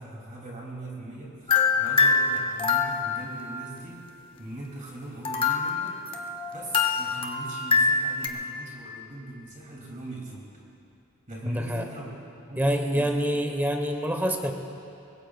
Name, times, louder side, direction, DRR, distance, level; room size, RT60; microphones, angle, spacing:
voice 1, 0.0-4.0 4.4-6.0 6.5-10.5 11.3-12.1 12.4-13.2, right 2 dB, 35° right, -4 dB, 2.8 m, -40 dB
sound 1, 1.5-3.4 5.2-8.3, left 4 dB, 25° left, 1.0 m, -24 dB
voice 2, 11.5-11.9 12.5-14.5, equal, 10° right, 4 dB, 1.1 m, -26 dB
25.0 x 20.5 x 2.4 m, 2.7 s
head